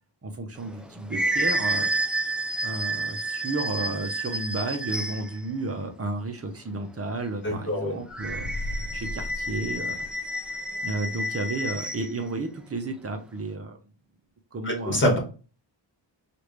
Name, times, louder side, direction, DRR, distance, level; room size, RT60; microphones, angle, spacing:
voice 1, 0.2-2.2 2.6-8.5 8.9-10.0 10.8-13.8 14.5-15.0, right 2 dB, 30° right, 5 dB, 0.8 m, -32 dB
sound 1, 0.6-5.4 8.1-12.1, right 1 dB, ahead, 0.4 m, -30 dB
voice 2, 7.4-8.0 14.6-15.2, left 1 dB, 25° left, 0 dB, 1.6 m, -24 dB
sound 2, 8.1-10.6, left 1 dB, 70° left, 0.7 m, -36 dB
4.7 x 2.5 x 3.3 m, 0.35 s
wide cardioid pair, 125°, 46 cm